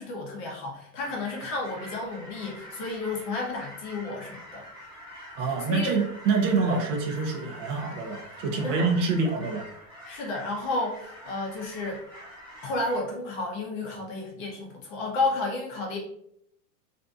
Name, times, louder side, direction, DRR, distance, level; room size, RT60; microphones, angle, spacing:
voice 1, 0.0-4.6 5.7-5.9 6.7-6.8 8.6-8.9 10.0-12.0 12.6-16.0, left 2 dB, 35° left, -1 dB, 0.5 m, -32 dB
sound 1, 1.0-13.0, equal, 5° right, 0.9 m, -45 dB
voice 2, 5.4-9.7, right 4 dB, 50° right, 1 dB, 0.6 m, -26 dB
2.5 x 2.5 x 2.2 m, 0.70 s
supercardioid pair, 150°, 48 cm